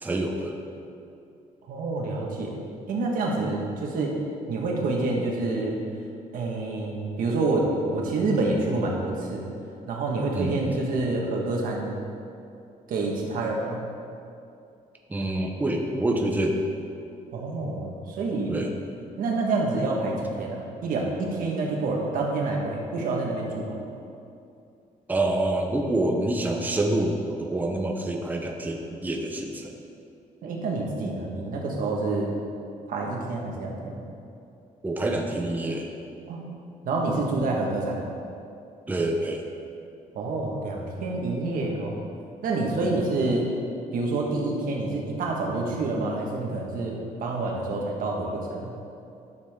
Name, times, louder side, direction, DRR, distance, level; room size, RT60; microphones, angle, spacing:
voice 1, 0.0-0.6 10.3-10.7 15.1-16.6 18.5-18.7 25.1-29.7 34.8-35.9 38.9-39.4, right 1 dB, 10° right, 1 dB, 0.8 m, -27 dB
voice 2, 1.7-4.2 4.5-5.8 6.3-9.5 9.9-11.9 12.9-13.8 17.3-18.6 19.2-23.8 30.4-32.3 32.9-34.0 36.3-36.4 36.8-38.0 40.1-42.0 42.4-43.5 43.9-48.7, right 2 dB, 80° right, -1 dB, 1.6 m, -27 dB
12.5 x 6.9 x 3.7 m, 2.6 s
cardioid pair, 135°, 14 cm